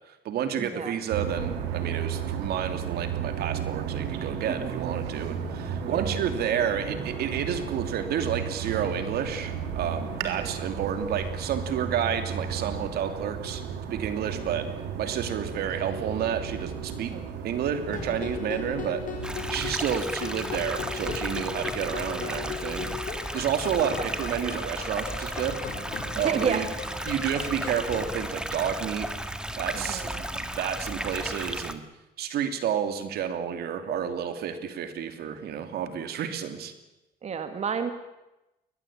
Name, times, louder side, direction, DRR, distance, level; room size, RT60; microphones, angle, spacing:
voice 1, 0.1-13.6 13.9-14.7 15.0-17.1 17.4-23.0 23.3-25.6 26.1-26.7 27.1-29.1 29.6-31.8 32.2-36.7, right 8 dB, 70° right, 9 dB, 2.7 m, -30 dB
voice 2, 0.6-1.0 4.6-4.7 5.8-6.2 10.2-10.6 17.1-17.3 23.9-24.1 26.2-26.6 29.7-30.2 37.2-37.9, right 6 dB, 40° right, 8 dB, 2.2 m, -31 dB
sound 1, 1.1-19.7, right 7 dB, 85° right, 3.5 m, -34 dB
sound 2, 17.9-28.2, left 7 dB, 50° left, 4.4 m, -38 dB
sound 3, 19.2-31.7, right 1 dB, 5° right, 1.8 m, -34 dB
21.5 x 20.5 x 8.7 m, 0.95 s
cardioid pair, 110°, 17 cm